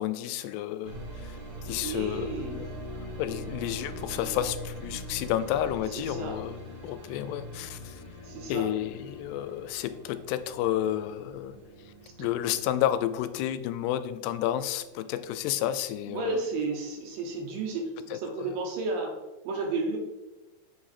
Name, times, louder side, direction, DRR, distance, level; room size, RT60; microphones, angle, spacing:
voice 1, 0.0-1.4 1.6-2.7 3.2-6.6 6.8-8.0 8.5-11.6 12.2-16.4 18.1-18.6, left 12 dB, 85° left, 12 dB, 2.6 m, -31 dB
sound 1, 0.8-16.6 16.9-17.7, equal, 40° right, 1.9 m, -43 dB
voice 2, 1.7-2.6 6.0-6.4 8.2-8.7 12.0-12.1 16.1-19.2 19.5-20.0, right 3 dB, 70° right, 2 dB, 2.4 m, -32 dB
7.7 x 4.9 x 4.2 m, 1.1 s
omnidirectional pair, 4.7 m